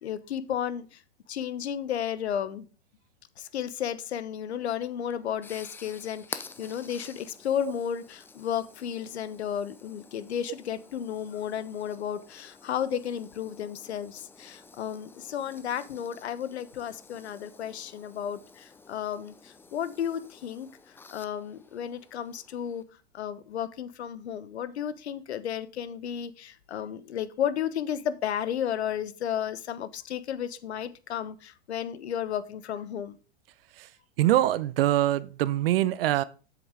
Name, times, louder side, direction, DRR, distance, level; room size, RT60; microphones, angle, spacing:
voice 1, 0.0-1.0 1.3-2.6 3.4-20.7 21.1-22.8 23.1-33.2, left 9 dB, 80° left, 1.1 m, -33 dB
sound 1, 4.8-22.8, left 4 dB, 5° left, 0.5 m, -50 dB
voice 2, 34.2-36.2, right 14 dB, 60° right, 0.8 m, -24 dB
7.9 x 7.1 x 3.7 m
hypercardioid pair, 120°, 32 cm